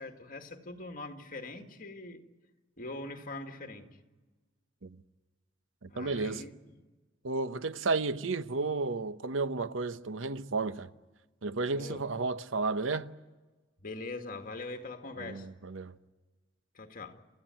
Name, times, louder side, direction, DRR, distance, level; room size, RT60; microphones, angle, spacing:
voice 1, 0.0-2.2 2.8-4.0 5.9-6.5 11.7-12.0 13.8-15.5 16.7-17.2, left 2 dB, 45° left, 2.1 m, -42 dB
voice 2, 5.8-6.4 7.2-10.9 11.4-13.2 15.2-15.9, right 3 dB, 75° right, 0.9 m, -32 dB
28.5 x 14.5 x 9.1 m
head